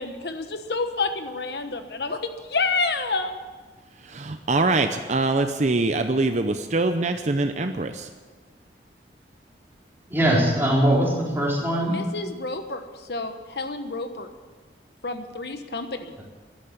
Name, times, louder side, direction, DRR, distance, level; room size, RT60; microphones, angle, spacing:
voice 1, 0.0-3.3 11.9-12.8 13.1-14.3 15.0-16.1, left 3 dB, 70° left, 7 dB, 1.2 m, -29 dB
voice 2, 4.0-8.1, right 2 dB, 40° right, 7 dB, 0.6 m, -24 dB
voice 3, 10.1-12.0, right 1 dB, 15° right, -4 dB, 4.0 m, -21 dB
14.0 x 11.5 x 8.6 m, 1.4 s
head